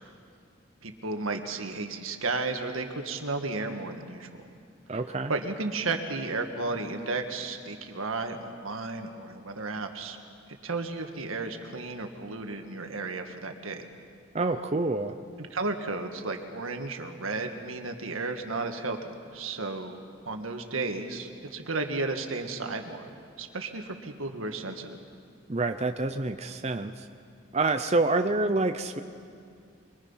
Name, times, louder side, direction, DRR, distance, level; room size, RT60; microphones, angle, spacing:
voice 1, 0.8-4.5 5.3-10.2 10.6-13.9 15.4-23.1 23.4-25.0, right 3 dB, 85° right, 5 dB, 1.7 m, -33 dB
voice 2, 4.9-5.3 14.3-15.1 25.5-27.0 27.5-29.0, right 2 dB, 30° right, 7 dB, 0.6 m, -27 dB
24.0 x 23.5 x 5.7 m, 2.4 s
head